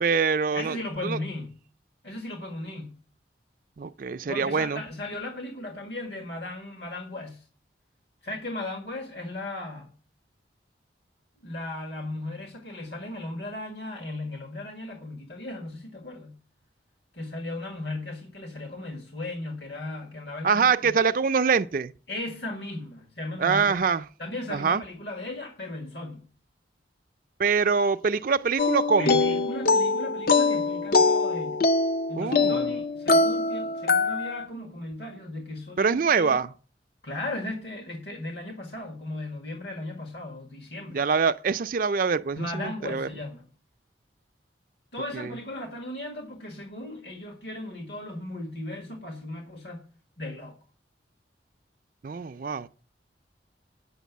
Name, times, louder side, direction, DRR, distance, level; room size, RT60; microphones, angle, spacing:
voice 1, 0.0-0.8 1.0-1.2 3.8-4.8 20.4-21.9 23.4-24.0 24.5-24.8 27.4-29.2 32.2-32.7 35.8-36.5 40.9-43.1 45.1-45.3 52.0-52.7, right 5 dB, 50° right, 0.4 m, -24 dB
voice 2, 0.5-1.5 2.0-3.0 4.3-7.4 8.2-9.9 11.4-16.4 17.1-21.0 22.1-23.8 24.2-26.3 29.0-31.6 32.1-36.3 37.0-41.0 42.4-43.5 44.9-49.8 50.2-50.6, left 1 dB, 70° left, 1.8 m, -36 dB
sound 1, 28.6-34.5, left 3 dB, 55° left, 0.5 m, -23 dB
9.3 x 5.9 x 8.2 m
head